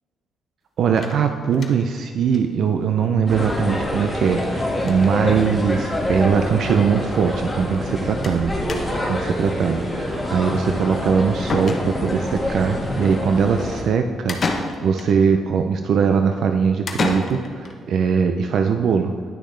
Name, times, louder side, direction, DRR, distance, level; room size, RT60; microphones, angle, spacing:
voice 1, 0.8-8.6 9.0-19.1, right 6 dB, 65° right, 6 dB, 0.4 m, -21 dB
sound 1, 1.0-2.0 2.3-2.4 2.7-2.8 3.0-3.1 4.3-4.5 4.8-5.2 6.0-6.1 6.4-6.5 8.2-8.4 8.7-9.2 11.0-11.1 11.5-12.3 14.3-15.2 16.9-17.7, left 3 dB, 45° left, 0.9 m, -29 dB
sound 2, 3.3-13.8, left 1 dB, ahead, 1.8 m, -26 dB
10.0 x 6.3 x 3.3 m, 2.1 s
cardioid pair, 90°, 0 cm